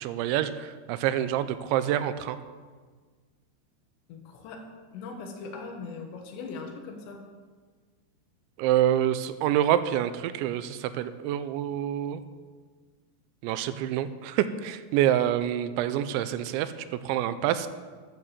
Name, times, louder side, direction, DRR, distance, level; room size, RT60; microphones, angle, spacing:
voice 1, 0.0-2.4 8.6-12.2 13.4-17.7, right 11 dB, 90° right, 12 dB, 3.0 m, -27 dB
voice 2, 4.1-4.6 4.9-7.2, left 4 dB, 75° left, 3 dB, 3.6 m, -40 dB
9.9 x 9.4 x 7.3 m, 1.5 s
omnidirectional pair, 5.2 m